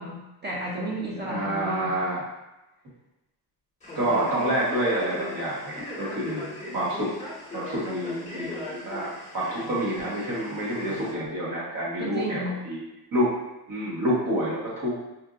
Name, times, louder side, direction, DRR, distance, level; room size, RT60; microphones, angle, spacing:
voice 1, 0.0-2.0 12.0-12.6, right 1 dB, 25° right, -4 dB, 0.6 m, -33 dB
voice 2, 1.2-2.2 3.9-7.1 7.5-9.1 9.3-12.8 13.1-13.3 13.7-14.9, right 1 dB, 50° right, -6 dB, 1.5 m, -28 dB
Male speech man speaking, 3.8-11.1, left 2 dB, 15° left, 1.4 m, -39 dB
4.4 x 2.6 x 2.5 m, 0.97 s
cardioid pair, 145°, 42 cm